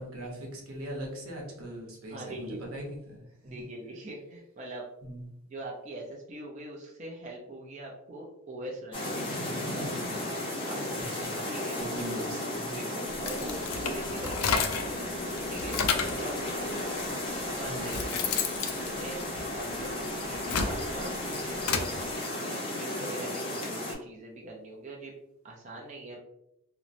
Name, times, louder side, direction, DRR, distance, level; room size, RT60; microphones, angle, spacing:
voice 1, 0.0-3.3 5.0-5.3 11.1-11.5 11.7-12.8 17.6-17.9, right 1 dB, 80° right, -1 dB, 0.8 m, -40 dB
voice 2, 2.1-2.6 3.4-4.9 5.5-9.4 9.6-9.9 10.6-11.0 11.5-11.8 12.7-15.1 15.5-16.9 17.4-18.0 18.5-21.9 22.5-25.1 25.4-26.2, right 1 dB, 35° right, -2 dB, 0.4 m, -42 dB
sound 1, 8.9-23.9, left 1 dB, 25° left, 0.5 m, -34 dB
sound 2, 13.1-15.0 15.4-16.3 17.1-17.2 17.6-19.8 20.2-21.9, left 6 dB, 85° left, 0.4 m, -31 dB
2.9 x 2.0 x 2.5 m, 0.80 s
head